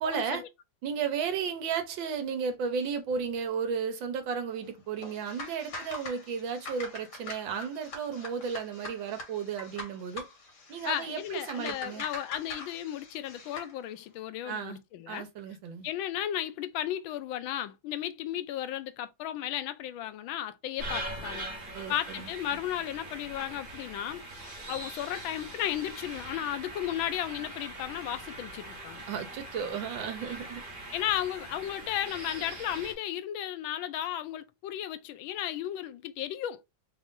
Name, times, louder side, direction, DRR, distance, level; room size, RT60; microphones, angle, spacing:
voice 1, 0.0-0.4 0.8-10.3 10.7-12.0 14.4-14.8 15.1-15.9 21.7-22.3 29.1-30.6, right 6 dB, 75° right, 1.6 m, -34 dB
sound 1, 5.0-13.7, left 2 dB, 65° left, 2.0 m, -44 dB
voice 2, 10.8-15.3 15.8-21.5 21.9-24.2 24.5-29.0 30.9-36.6, left 11 dB, 90° left, 1.4 m, -34 dB
sound 2, 20.8-32.9, right 1 dB, 30° right, 1.4 m, -42 dB
4.0 x 2.5 x 3.6 m
omnidirectional pair, 2.1 m